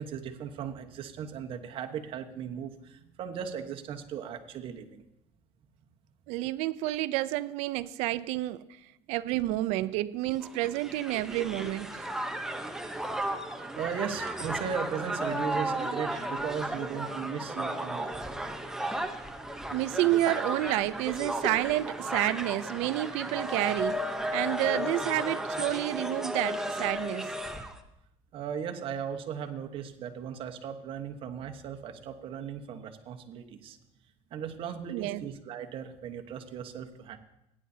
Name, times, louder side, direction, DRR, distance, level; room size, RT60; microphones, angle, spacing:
voice 1, 0.0-5.0 13.0-18.2 28.3-33.8 34.3-37.2, right 8 dB, 55° right, 1.2 m, -37 dB
voice 2, 6.3-8.6 9.1-12.1 19.7-24.0 24.3-27.3 34.9-35.2, right 16 dB, 75° right, 0.5 m, -29 dB
Crowd, 10.4-27.8, right 1 dB, 5° right, 0.9 m, -34 dB
17.5 x 9.9 x 2.8 m
supercardioid pair, 110°, 11 cm